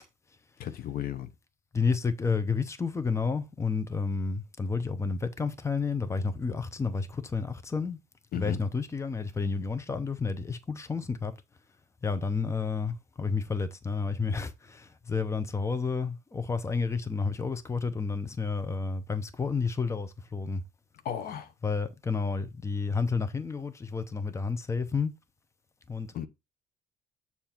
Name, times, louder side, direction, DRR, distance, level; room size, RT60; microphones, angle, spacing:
voice 1, 0.6-1.3 8.3-8.6 21.0-21.5 26.1-26.3, left 9 dB, 60° left, 0.8 m, -34 dB
voice 2, 1.7-8.0 8.3-11.3 12.0-20.6 21.6-25.1 25.9-26.1, left 4 dB, 15° left, 0.8 m, -30 dB
7.0 x 2.8 x 5.8 m
cardioid pair, 110°, 17 cm